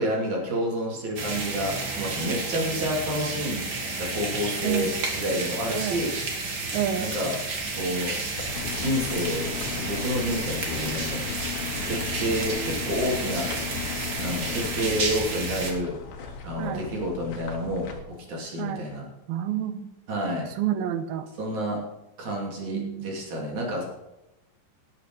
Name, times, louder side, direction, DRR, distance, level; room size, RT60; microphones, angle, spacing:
voice 1, 0.0-3.7 4.0-6.1 7.0-7.4 7.7-8.1 8.7-11.3 11.8-13.5 14.2-16.0 16.4-19.0 20.1-20.5 21.4-21.8 22.2-23.8, equal, 55° right, -2 dB, 4.2 m, -29 dB
sound 1, 1.2-15.7, right 3 dB, 40° right, 1.7 m, -31 dB
voice 2, 4.6-5.0 5.7-6.0 6.7-7.1 16.6-16.9 18.6-18.9 19.3-19.9 20.6-21.3 22.7-23.1, right 10 dB, 85° right, 10 dB, 2.8 m, -29 dB
sound 2, 8.3-18.0, left 4 dB, 65° left, 2.7 m, -41 dB
sound 3, 8.5-15.0, left 12 dB, 90° left, 2.6 m, -36 dB
17.5 x 8.4 x 4.7 m, 0.95 s
omnidirectional pair, 4.1 m